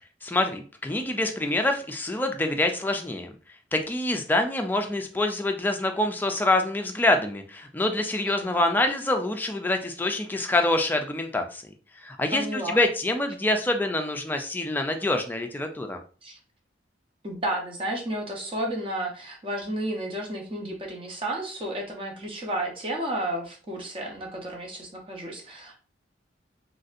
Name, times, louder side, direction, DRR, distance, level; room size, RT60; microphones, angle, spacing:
voice 1, 0.2-3.3 3.7-11.6 12.0-16.0, left 2 dB, 10° left, 5 dB, 0.3 m, -26 dB
voice 2, 8.2-8.6 12.3-12.8 16.2-16.4 17.2-25.8, right 1 dB, 30° right, 1 dB, 0.7 m, -32 dB
3.1 x 2.6 x 2.5 m, 0.39 s
head